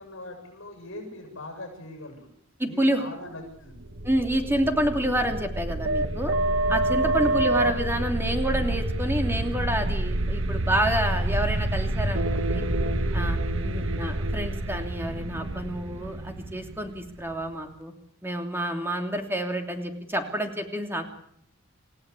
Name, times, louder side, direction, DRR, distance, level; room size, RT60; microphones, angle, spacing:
voice 1, 0.0-2.3 2.7-3.8 7.0-7.4, left 1 dB, 65° left, 3 dB, 7.6 m, -41 dB
voice 2, 2.6-3.1 4.0-6.3 6.7-12.6 13.1-13.4 13.6-17.9 18.2-21.0, right 1 dB, 10° right, 4 dB, 3.1 m, -28 dB
sound 1, 3.8-17.5, right 1 dB, 65° right, 1.4 m, -27 dB
29.0 x 16.5 x 8.5 m, 0.71 s
head